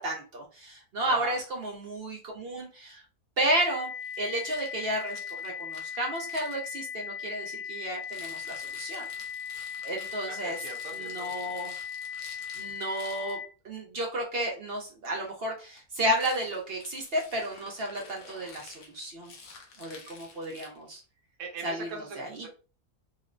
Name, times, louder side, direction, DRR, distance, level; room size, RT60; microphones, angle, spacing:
voice 1, 0.0-3.0 3.4-3.9 4.2-9.1 9.8-10.6 10.9-11.8 12.6-13.4 13.6-19.3 19.8-21.0 21.6-22.5, right 1 dB, 55° right, 0 dB, 0.7 m, -32 dB
voice 2, 1.0-1.4 10.3-11.4 21.4-22.5, right 4 dB, 75° right, 1 dB, 1.2 m, -40 dB
sound 1, 3.5-13.5, left 8 dB, 45° left, 1.0 m, -38 dB
Rattle, 4.0-6.6 7.9-13.4 16.1-21.0, left 4 dB, 85° left, 1.2 m, -50 dB
4.1 x 2.0 x 2.5 m, 0.36 s
omnidirectional pair, 1.5 m